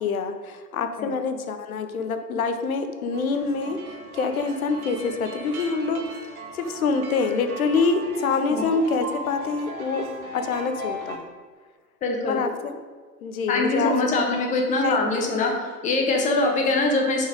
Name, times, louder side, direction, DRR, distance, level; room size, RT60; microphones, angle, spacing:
voice 1, 0.0-3.8 4.1-6.0 6.5-10.0 10.3-11.3 12.2-12.8 13.2-13.9 14.8-15.0 15.3-15.6, left 4 dB, 60° left, 8 dB, 0.9 m, -26 dB
sound 1, 3.1-11.2, right 1 dB, 60° right, 1.5 m, -38 dB
voice 2, 12.0-12.4 13.5-15.5 15.8-17.3, left 2 dB, 15° left, 1 dB, 0.9 m, -23 dB
5.8 x 5.4 x 5.0 m, 1.5 s
figure-of-eight pair, 105°, 48 cm